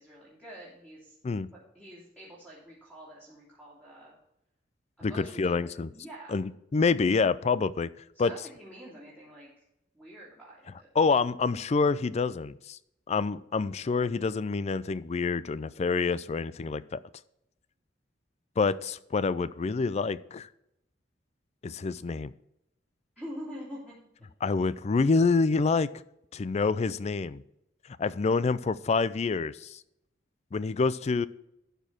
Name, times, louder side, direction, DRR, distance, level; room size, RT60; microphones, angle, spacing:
voice 1, 0.0-1.1 1.5-4.2 5.0-6.3 8.1-9.5 9.9-10.9 23.2-23.9, equal, 5° right, -9 dB, 2.8 m, -46 dB
voice 2, 5.0-5.9 6.3-7.9 8.2-8.3 11.0-12.8 13.1-17.0 18.6-20.5 21.6-22.3 24.4-25.9 26.3-27.4 28.0-29.8 30.5-31.3, left 4 dB, 35° left, 17 dB, 0.4 m, -27 dB
12.0 x 4.5 x 6.0 m, 0.81 s
head